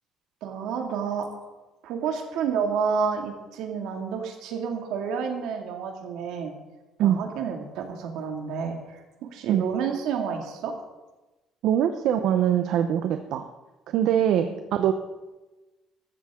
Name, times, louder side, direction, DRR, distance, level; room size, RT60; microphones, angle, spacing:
voice 1, 0.4-1.3 1.8-6.5 7.0-10.7 14.3-14.6, right 6 dB, 85° right, 3 dB, 2.3 m, -30 dB
voice 2, 11.6-13.4 13.9-14.9, right 10 dB, 70° right, 7 dB, 0.8 m, -23 dB
14.5 x 13.5 x 3.7 m, 1.1 s
cardioid pair, 150°, 0 cm